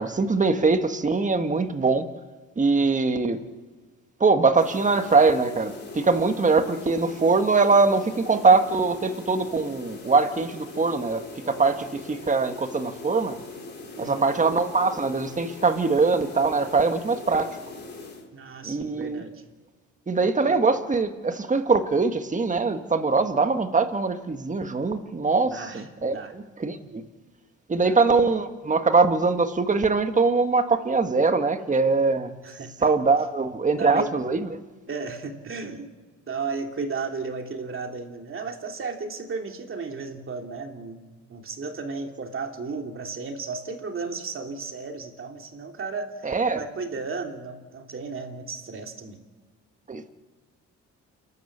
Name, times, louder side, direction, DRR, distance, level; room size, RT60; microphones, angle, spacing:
voice 1, 0.0-2.1 2.6-3.4 4.2-13.4 14.0-17.6 18.6-19.2 20.1-27.0 27.7-32.4 32.8-34.6 46.2-46.6 49.9-50.1, right 4 dB, 25° right, 8 dB, 1.5 m, -22 dB
sound 1, 4.5-18.3, left 3 dB, 35° left, 4.2 m, -41 dB
voice 2, 14.0-14.3 18.3-19.3 20.5-20.6 25.5-25.8 26.1-26.3 27.8-28.0 32.4-32.9 33.8-34.1 34.9-35.9 36.3-41.0 41.3-46.1 46.5-49.2, right 4 dB, 45° right, 4 dB, 2.8 m, -34 dB
29.0 x 12.5 x 7.4 m, 1.4 s
cardioid pair, 90°, 30 cm